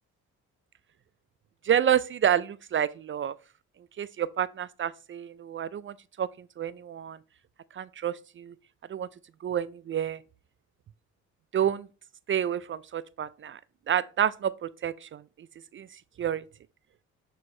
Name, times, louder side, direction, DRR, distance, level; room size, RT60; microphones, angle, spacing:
voice 1, 1.7-3.3 4.0-6.3 6.6-7.2 7.8-8.5 8.9-9.1 9.4-10.2 11.5-11.9 12.3-13.6 13.9-15.2 15.7-15.9 16.2-16.4, right 9 dB, 40° right, 0.4 m, -29 dB
11.5 x 4.6 x 3.2 m
cardioid pair, 90°, 30 cm